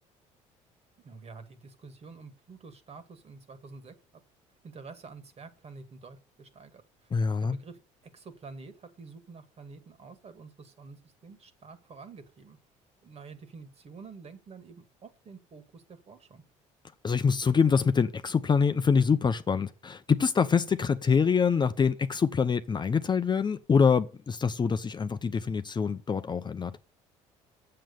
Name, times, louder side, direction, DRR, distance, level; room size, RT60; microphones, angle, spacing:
voice 1, 1.0-3.9 4.6-12.6 13.0-16.4, right 4 dB, 45° right, 2.1 m, -48 dB
voice 2, 7.1-7.6 17.0-26.8, left 6 dB, 30° left, 0.7 m, -25 dB
7.7 x 7.5 x 6.9 m
supercardioid pair, 75°, 15 cm